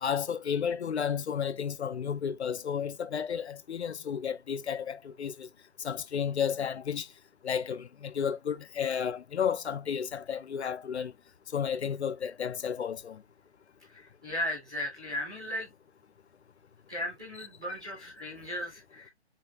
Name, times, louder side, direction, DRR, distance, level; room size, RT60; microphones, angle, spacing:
voice 1, 0.0-5.5 5.8-7.1 7.4-11.1 11.5-13.2, left 7 dB, 75° left, 0.6 m, -32 dB
voice 2, 13.8-15.7 16.9-19.1, left 1 dB, 5° right, 0.6 m, -36 dB
5.6 x 2.6 x 2.9 m
hypercardioid pair, 165°, 34 cm